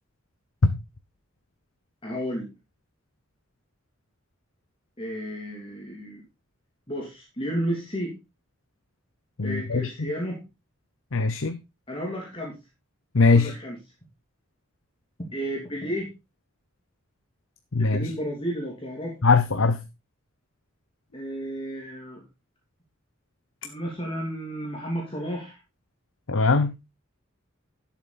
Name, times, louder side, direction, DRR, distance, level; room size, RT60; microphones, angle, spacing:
voice 1, 2.0-2.5 5.0-6.2 6.9-8.1 9.4-10.4 11.9-12.6 13.3-13.8 15.3-16.1 17.8-19.2 21.1-22.2 23.6-25.6, equal, 25° left, 2.8 m, -32 dB
voice 2, 9.4-10.1 11.1-11.6 13.1-13.5 17.7-18.1 19.2-19.8 26.3-26.8, left 3 dB, 75° left, 0.8 m, -21 dB
12.0 x 7.4 x 4.0 m
head